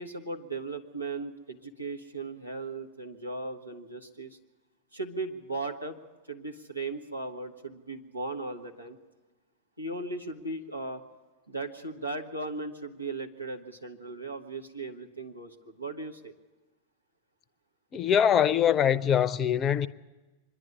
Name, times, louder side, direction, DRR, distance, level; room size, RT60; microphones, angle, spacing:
voice 1, 0.0-4.4 4.9-6.0 6.3-9.0 9.8-11.0 11.5-16.3, right 3 dB, 85° right, 1.6 m, -37 dB
voice 2, 17.9-19.9, left 9 dB, 25° left, 0.6 m, -23 dB
25.0 x 11.0 x 9.8 m
figure-of-eight pair, 90°, 0 cm